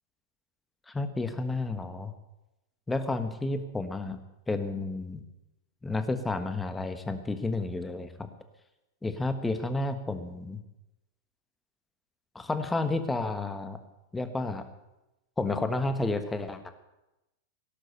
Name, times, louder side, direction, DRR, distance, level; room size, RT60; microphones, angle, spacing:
voice 1, 0.9-2.1 2.9-4.2 4.5-5.2 5.8-8.3 9.0-10.6 12.3-13.8 14.1-14.6 15.4-16.7, left 2 dB, 10° left, 9 dB, 1.4 m, -31 dB
17.0 x 11.5 x 6.7 m, 0.97 s
figure-of-eight pair, 95°, 0 cm